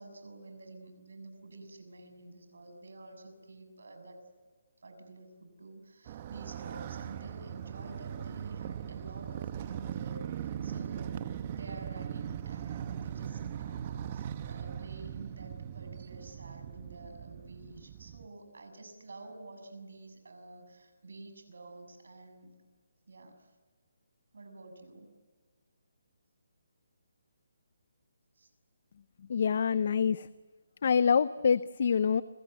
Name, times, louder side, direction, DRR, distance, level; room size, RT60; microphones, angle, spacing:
voice 1, 0.0-4.2 4.8-22.5 23.1-23.5 24.3-25.1 28.4-28.5, right 2 dB, 80° right, 6 dB, 6.8 m, -49 dB
Motorcycle, 6.1-18.3, right 9 dB, 30° right, 1.1 m, -40 dB
voice 2, 29.3-30.3 30.8-32.2, left 6 dB, 50° left, 16 dB, 0.7 m, -26 dB
29.5 x 23.0 x 8.1 m, 1.5 s
hypercardioid pair, 170°, 0 cm